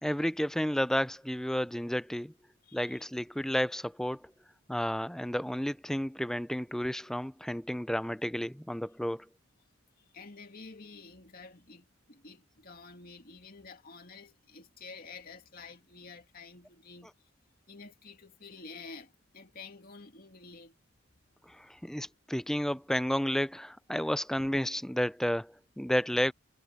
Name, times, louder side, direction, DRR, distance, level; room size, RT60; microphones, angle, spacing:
voice 1, 0.0-2.3 2.7-4.3 4.7-9.2 21.5-26.3, equal, 5° left, 0.5 m, -31 dB
voice 2, 2.6-3.0 10.1-17.1 17.7-20.8, left 4 dB, 50° left, 2.6 m, -50 dB
head